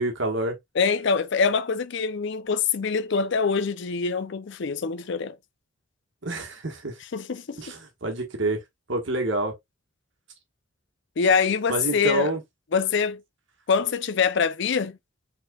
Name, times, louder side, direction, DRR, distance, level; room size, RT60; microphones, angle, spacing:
voice 1, 0.0-0.6 6.2-6.9 7.6-8.6 8.9-9.5 11.7-12.4, right 2 dB, 60° right, 1.4 m, -27 dB
voice 2, 0.8-5.3 7.1-7.6 11.2-12.3 12.7-13.2 13.7-15.0, left 5 dB, 55° left, 0.4 m, -24 dB
4.9 x 3.8 x 2.3 m
head